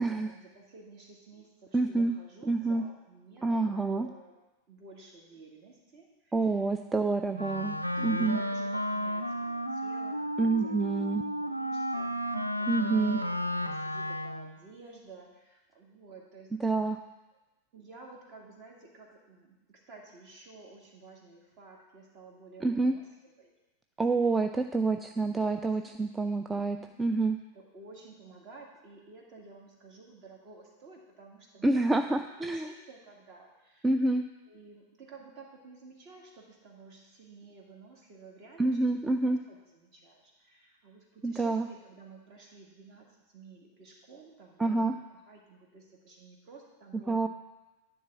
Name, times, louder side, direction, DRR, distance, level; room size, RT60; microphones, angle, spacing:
voice 1, 0.0-4.3 4.7-6.5 6.9-7.1 7.9-10.3 10.6-16.5 17.7-23.1 23.4-23.5 25.6-25.9 26.5-26.8 27.5-32.2 32.5-33.9 34.5-38.9 39.2-47.3, right 3 dB, 40° right, -1 dB, 1.9 m, -52 dB
voice 2, 1.7-2.1 2.5-2.8 3.4-4.1 6.3-7.8 8.0-8.4 10.4-11.2 12.7-13.2 16.6-17.0 22.6-22.9 24.0-27.4 31.6-32.7 33.8-34.2 38.6-39.4 41.2-41.7 44.6-44.9 47.1-47.3, right 3 dB, 10° right, 7 dB, 0.3 m, -27 dB
Wind instrument woodwind instrument, 7.3-14.6, equal, 90° right, 0.4 m, -33 dB
10.0 x 3.6 x 7.1 m, 1.1 s
figure-of-eight pair, 90°, 0 cm